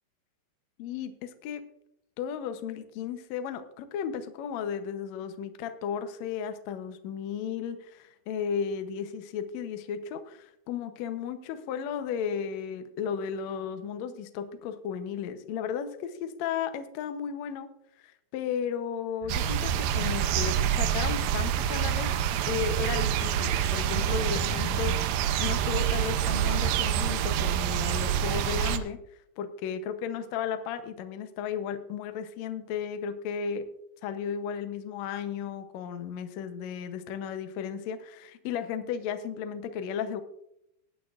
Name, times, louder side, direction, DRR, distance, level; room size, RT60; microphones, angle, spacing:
voice 1, 0.8-1.6 2.2-17.7 18.0-22.1 22.5-29.0 29.4-33.6 34.0-40.2, left 7 dB, 80° left, 8 dB, 1.5 m, -34 dB
sound 1, 19.2-25.0, left 3 dB, 65° left, 2.3 m, -41 dB
sound 2, 19.3-28.8, right 10 dB, 80° right, 2.4 m, -27 dB
19.5 x 9.6 x 2.5 m, 0.77 s
omnidirectional pair, 4.4 m